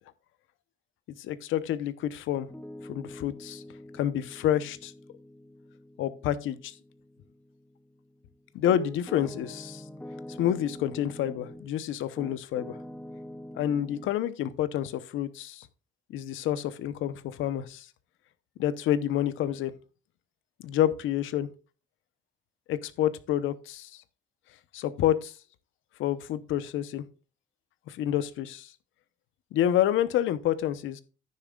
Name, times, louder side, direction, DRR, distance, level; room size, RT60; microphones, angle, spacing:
voice 1, 1.2-2.5 2.9-3.6 3.9-4.9 6.0-6.7 8.5-9.8 10.4-12.7 13.5-15.7 16.1-17.9 18.6-19.7 20.6-21.5 22.7-23.9 24.7-25.3 26.0-27.0 27.9-28.7 29.5-31.0, left 11 dB, 85° left, 0.9 m, -28 dB
Piano, 2.4-11.7 12.2-14.2, left 1 dB, 5° left, 1.0 m, -45 dB
10.5 x 9.8 x 2.4 m
cardioid pair, 90°, 20 cm